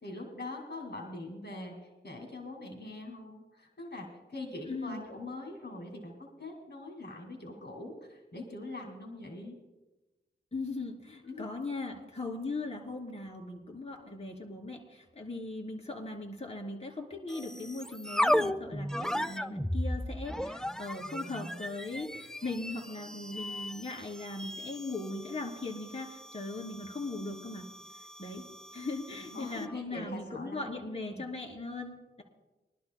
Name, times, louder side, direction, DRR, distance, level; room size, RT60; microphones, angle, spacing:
voice 1, 0.0-9.6 11.2-11.5 29.3-31.2, left 2 dB, 60° left, 1 dB, 2.2 m, -43 dB
voice 2, 4.6-5.1 10.5-27.6 28.2-28.4 28.7-32.2, left 2 dB, 30° left, 0 dB, 2.8 m, -39 dB
sound 1, 17.3-29.8, equal, 5° left, 0.5 m, -36 dB
23.5 x 12.0 x 2.2 m, 1.1 s
wide cardioid pair, 60°, 20 cm